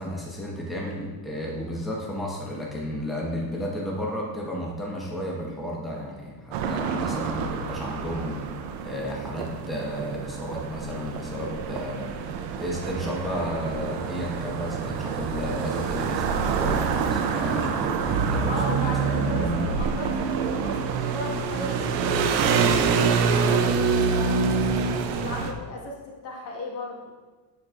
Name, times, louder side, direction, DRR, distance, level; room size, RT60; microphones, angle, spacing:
voice 1, 0.0-8.5 8.8-12.3 12.6-18.8 19.0-19.7, equal, ahead, -4 dB, 1.2 m, -32 dB
sound 1, 6.5-25.5, right 5 dB, 80° right, 0.8 m, -26 dB
voice 2, 18.5-24.7 25.1-27.1, left 2 dB, 55° left, -2 dB, 1.7 m, -36 dB
9.6 x 4.6 x 2.5 m, 1.3 s
supercardioid pair, 100°, 50 cm